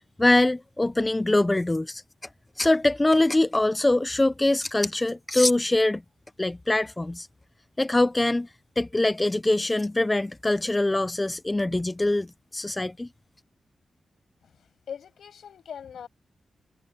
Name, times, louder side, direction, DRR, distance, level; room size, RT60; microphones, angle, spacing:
voice 1, 0.2-2.0 2.6-6.0 6.4-7.3 7.8-8.5 8.8-13.1, left 2 dB, 20° left, 0.5 m, -23 dB
voice 2, 14.4-16.1, left 8 dB, 85° left, 7.9 m, -41 dB
cardioid pair, 80°, 0 cm